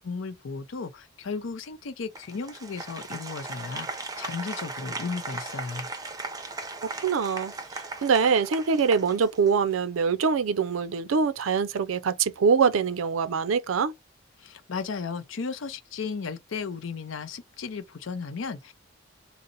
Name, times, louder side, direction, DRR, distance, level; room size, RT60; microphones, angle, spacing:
voice 1, 0.0-5.9 14.4-18.7, left 5 dB, 70° left, 0.6 m, -35 dB
Applause, 2.1-9.7, right 3 dB, 20° right, 0.5 m, -38 dB
voice 2, 7.0-7.5 8.0-13.9, right 6 dB, 85° right, 0.4 m, -24 dB
3.9 x 2.1 x 3.9 m
head